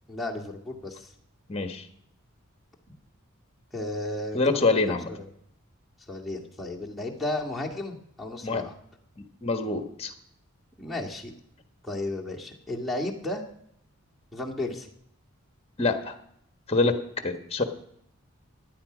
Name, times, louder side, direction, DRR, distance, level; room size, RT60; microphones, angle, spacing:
voice 1, 0.1-1.1 3.7-5.3 6.1-8.7 10.8-11.3 11.8-13.4 14.3-14.9, left 2 dB, ahead, -3 dB, 2.0 m, -34 dB
voice 2, 1.5-1.8 4.3-5.1 8.4-8.6 9.2-10.1 15.8-16.1 16.7-16.9 17.2-17.6, left 3 dB, 25° left, 8 dB, 1.3 m, -25 dB
16.0 x 10.5 x 5.1 m, 0.71 s
head